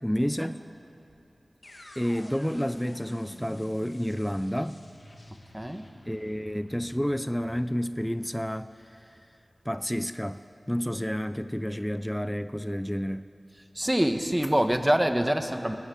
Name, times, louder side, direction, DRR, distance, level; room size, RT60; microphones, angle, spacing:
voice 1, 0.0-0.6 2.0-4.8 6.1-9.2 9.7-10.4 10.7-13.3, equal, 5° left, 12 dB, 0.5 m, -30 dB
sound 1, 1.6-9.6, left 1 dB, 45° left, 2.2 m, -50 dB
voice 2, 5.5-5.9 13.7-15.8, equal, 15° right, 7 dB, 1.4 m, -25 dB
20.5 x 17.0 x 8.6 m, 2.7 s
wide cardioid pair, 55°, 0 cm